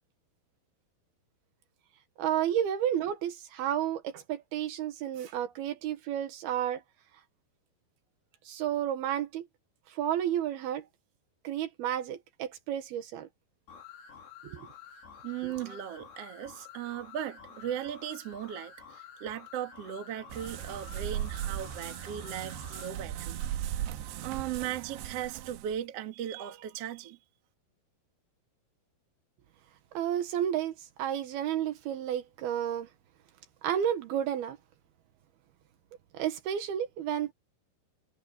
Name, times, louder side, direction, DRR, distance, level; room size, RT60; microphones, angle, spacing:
voice 1, 2.2-6.8 8.5-9.5 9.9-10.9 11.4-13.3 14.4-14.6 15.4-15.5 29.9-32.9 33.6-34.6 36.1-37.3, right 10 dB, 70° right, 3.0 m, -31 dB
sound 1, 13.7-22.9, left 7 dB, 75° left, 6.3 m, -50 dB
voice 2, 15.2-23.4 24.2-27.2, right 10 dB, 50° right, 2.1 m, -37 dB
sound 2, 20.3-25.8, right 11 dB, 85° right, 3.4 m, -37 dB
omnidirectional pair, 4.9 m